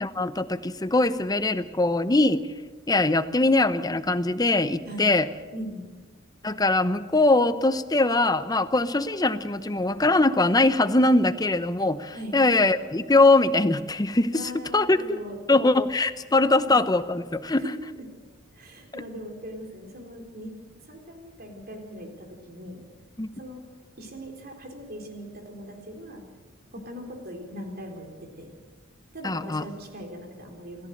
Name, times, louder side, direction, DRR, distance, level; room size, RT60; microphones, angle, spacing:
voice 1, 0.0-2.4 2.9-5.3 6.4-14.3 14.7-15.2 15.5-17.6 23.2-23.3 29.2-29.6, left 2 dB, 20° left, 12 dB, 0.8 m, -22 dB
voice 2, 5.5-5.9 12.1-12.4 14.3-15.4 17.6-18.0 18.5-20.5 20.8-22.8 23.4-23.6 24.0-26.2 26.7-28.5 29.1-30.9, equal, 50° right, 3 dB, 3.9 m, -40 dB
28.0 x 14.5 x 6.6 m, 1.4 s
head